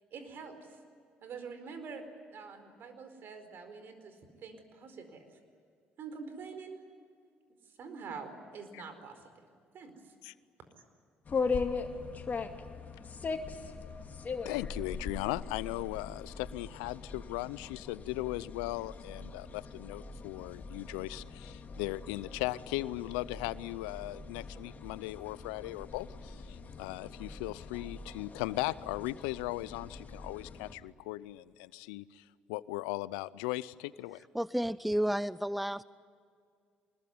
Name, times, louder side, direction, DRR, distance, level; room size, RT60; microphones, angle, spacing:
voice 1, 0.1-0.8 1.2-5.4 6.0-6.8 7.6-9.4 9.7-10.1, right 5 dB, 60° right, 8 dB, 4.6 m, -46 dB
sound 1, 11.2-30.7, left 4 dB, 40° left, 2.4 m, -40 dB
voice 2, 14.4-34.2, left 19 dB, 85° left, 19 dB, 0.6 m, -38 dB
voice 3, 34.3-35.8, equal, ahead, 18 dB, 0.6 m, -31 dB
24.5 x 21.0 x 9.6 m, 2.2 s
hypercardioid pair, 55°, 4 cm